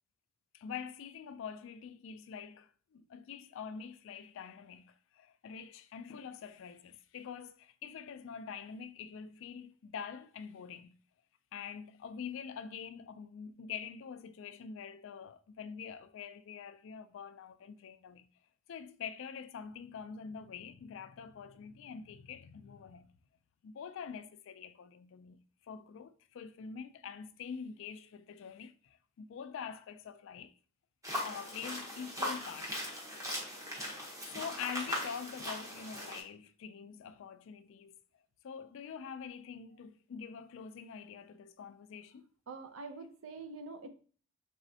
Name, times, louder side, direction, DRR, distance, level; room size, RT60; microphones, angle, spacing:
voice 1, 0.5-11.0 11.5-18.3 18.7-23.1 23.6-30.5 31.2-32.9 33.9-37.9 38.4-42.2, left 7 dB, 70° left, 0.3 m, -45 dB
sound 1, 31.0-36.2, equal, 15° right, 1.0 m, -39 dB
voice 2, 42.5-43.9, right 3 dB, 80° right, 0.6 m, -45 dB
4.0 x 3.4 x 2.7 m
head